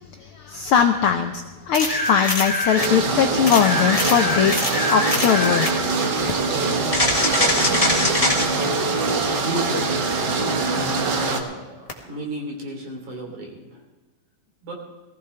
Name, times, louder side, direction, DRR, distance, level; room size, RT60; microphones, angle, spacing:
voice 1, 0.0-6.3, left 8 dB, 80° left, 6 dB, 1.2 m, -21 dB
sound 1, 1.7-2.9 3.5-5.8 6.9-8.5 11.9-12.0, left 2 dB, 20° left, 1.1 m, -23 dB
sound 2, 2.8-11.4, right 3 dB, 50° right, 1.4 m, -23 dB
voice 2, 9.4-9.9 10.5-13.8 14.6-14.7, right 1 dB, 75° right, 0 dB, 4.7 m, -33 dB
19.5 x 15.5 x 3.4 m, 1.2 s
omnidirectional pair, 3.4 m